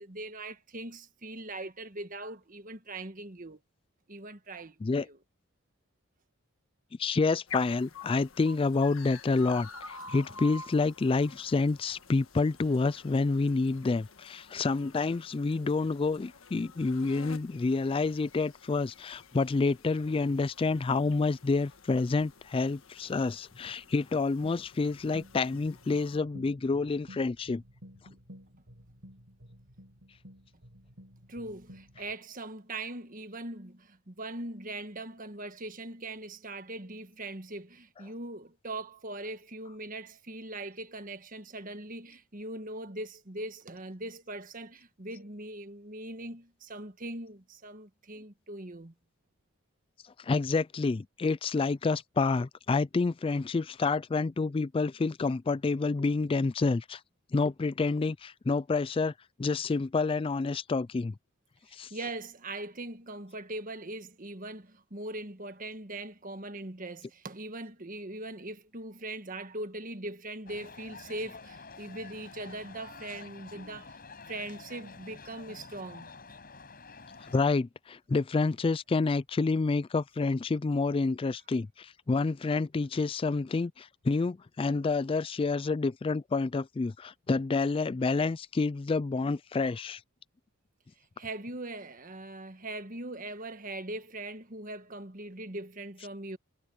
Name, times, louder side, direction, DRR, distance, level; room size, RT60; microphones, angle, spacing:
voice 1, 0.0-3.6 4.1-5.2 31.3-48.9 61.9-74.0 74.3-76.1 91.2-96.4, right 2 dB, 40° right, 1.5 m, -41 dB
voice 2, 7.0-27.6 50.2-57.0 57.3-59.1 59.4-61.1 61.7-61.9 77.2-90.0, left 3 dB, 25° left, 0.3 m, -28 dB
sound 1, 7.5-26.2, left 4 dB, 70° left, 1.5 m, -49 dB
sound 2, 24.4-32.1, equal, 70° right, 5.0 m, -53 dB
sound 3, 70.5-77.4, left 4 dB, 45° left, 5.1 m, -49 dB
head